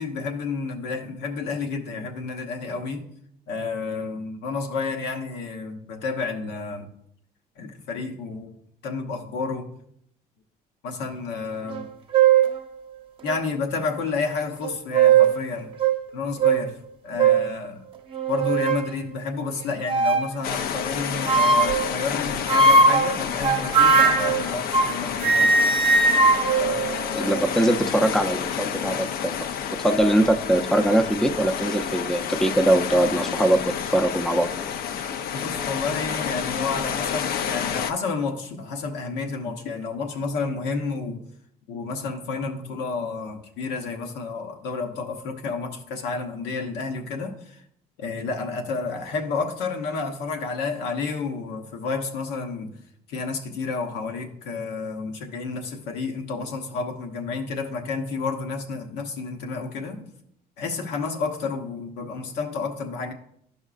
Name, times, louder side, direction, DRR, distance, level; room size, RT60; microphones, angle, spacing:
voice 1, 0.0-3.0 3.5-6.9 7.6-8.5 8.8-9.7 10.8-11.9 13.2-15.7 16.1-16.7 17.0-17.8 18.3-25.5 26.6-27.5 28.7-28.9 35.3-41.2 41.7-47.6 48.0-52.7 53.1-60.1 60.6-63.1, left 4 dB, 90° left, 3 dB, 1.0 m, -30 dB
sound 1, 11.7-11.8 12.1-12.5 13.3-13.4 14.6-15.4 15.8-16.0 16.4-16.6 17.2-17.5 18.1-18.9 19.9-20.3 21.3-21.9 22.5-25.0 25.2-27.5, right 4 dB, 30° right, 0.8 m, -19 dB
sound 2, 20.4-37.9, left 8 dB, 65° left, 0.5 m, -30 dB
voice 2, 27.2-29.5 29.7-34.5, right 1 dB, 5° left, 6 dB, 0.5 m, -22 dB
12.0 x 5.4 x 2.4 m, 0.71 s
cardioid pair, 110°, 17 cm